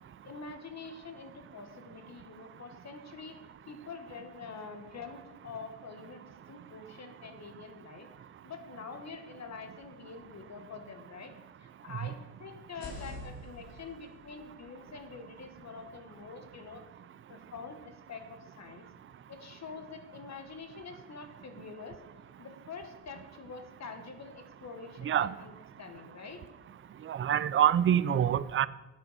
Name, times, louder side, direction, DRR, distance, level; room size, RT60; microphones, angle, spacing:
voice 1, 0.2-3.4 3.7-8.1 8.4-11.3 11.6-16.8 17.3-18.9 19.3-22.0 22.4-25.5 25.8-26.4, left 4 dB, 40° left, 7 dB, 1.3 m, -46 dB
sound 1, 12.6-16.5, left 1 dB, 60° left, 2.8 m, -49 dB
voice 2, 25.0-25.3 27.1-28.7, right 10 dB, 35° right, 17 dB, 0.4 m, -26 dB
11.5 x 8.6 x 4.1 m, 1.1 s
cardioid pair, 100°, 40 cm